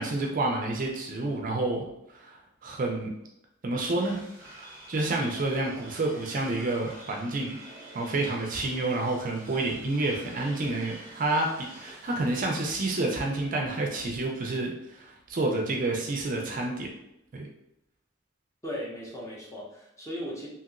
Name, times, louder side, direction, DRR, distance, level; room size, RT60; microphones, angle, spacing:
voice 1, 0.0-1.8 2.1-2.4 2.6-3.1 3.6-4.2 4.6-7.6 7.9-16.9 17.3-17.5, right 2 dB, 40° right, 0 dB, 0.4 m, -29 dB
sound 1, 4.0-12.7, right 1 dB, 10° right, 0.8 m, -48 dB
voice 2, 18.6-20.5, equal, 15° left, -4 dB, 0.7 m, -37 dB
2.8 x 2.8 x 2.5 m, 0.84 s
head